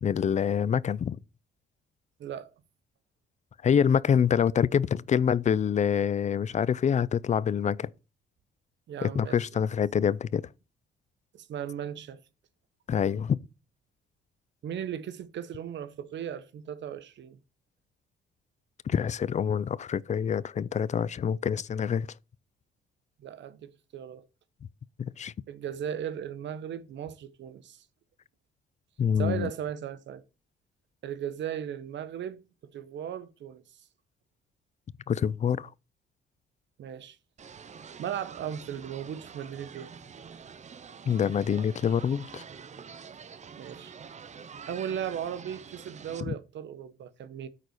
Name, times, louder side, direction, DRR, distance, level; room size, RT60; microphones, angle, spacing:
voice 1, 0.0-1.2 3.6-7.9 9.0-10.4 12.9-13.4 18.9-22.1 25.0-25.3 29.0-29.5 35.1-35.7 41.1-42.4 46.3-46.4, left 8 dB, 35° left, 0.4 m, -26 dB
voice 2, 8.9-9.6 11.3-12.2 14.6-17.4 23.2-24.2 25.5-27.8 29.2-30.2 31.0-33.8 36.8-37.2 38.0-39.9 43.6-43.9 44.7-47.5, right 9 dB, 65° right, 1.0 m, -37 dB
sound 1, 37.4-46.2, right 6 dB, 35° right, 0.7 m, -46 dB
8.9 x 4.1 x 6.5 m
cardioid pair, 90°, 20 cm